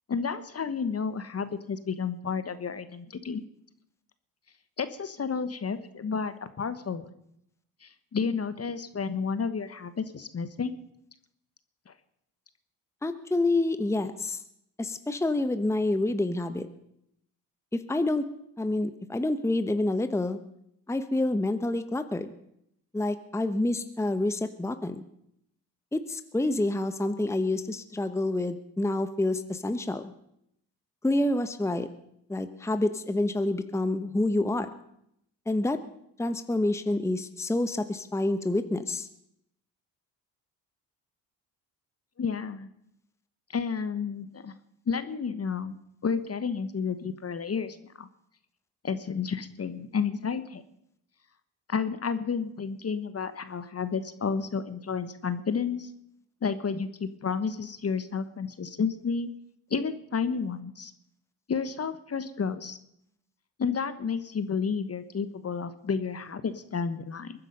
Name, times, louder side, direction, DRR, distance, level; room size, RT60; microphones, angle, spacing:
voice 1, 0.1-3.4 4.8-7.1 7.8-10.7 11.9-12.0 42.2-42.7 43.5-44.5 44.9-45.8 46.0-48.1 48.8-50.6 51.7-55.9 56.4-59.3 59.7-60.9 61.5-62.8 63.6-67.3, left 6 dB, 30° left, 12 dB, 1.2 m, -31 dB
voice 2, 13.0-14.4 14.8-16.7 17.7-18.3 18.6-20.4 20.9-22.3 22.9-25.0 25.9-30.1 31.0-31.9 32.3-34.7 35.5-35.8 36.2-39.1, left 2 dB, 5° left, 10 dB, 1.0 m, -28 dB
22.0 x 9.8 x 5.4 m, 0.76 s
hypercardioid pair, 50°, 45 cm